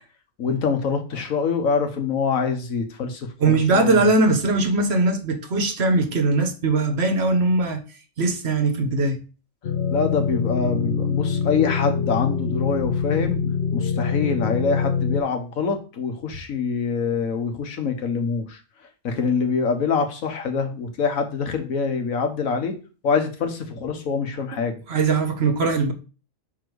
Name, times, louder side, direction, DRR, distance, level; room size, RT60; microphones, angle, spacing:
voice 1, 0.4-4.0 9.9-13.4 13.7-18.6 19.0-22.7 23.0-24.8, left 5 dB, 85° left, 1.5 m, -25 dB
voice 2, 3.4-7.8 8.2-9.2 24.9-25.9, right 3 dB, 55° right, 1.2 m, -20 dB
sound 1, 9.6-15.2, left 6 dB, 55° left, 0.9 m, -24 dB
5.7 x 4.4 x 4.6 m
omnidirectional pair, 1.4 m